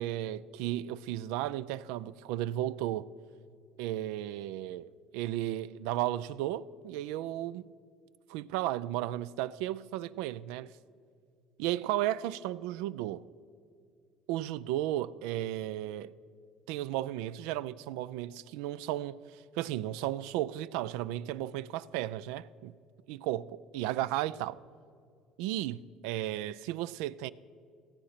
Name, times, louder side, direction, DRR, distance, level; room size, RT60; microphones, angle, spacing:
voice 1, 0.0-3.1 3.8-7.7 8.3-10.7 11.6-13.2 14.3-16.1 16.7-19.2 19.6-22.7 23.1-24.6 25.4-27.3, right 14 dB, 80° right, 0.3 m, -34 dB
16.0 x 8.6 x 5.8 m
supercardioid pair, 90°, 0 cm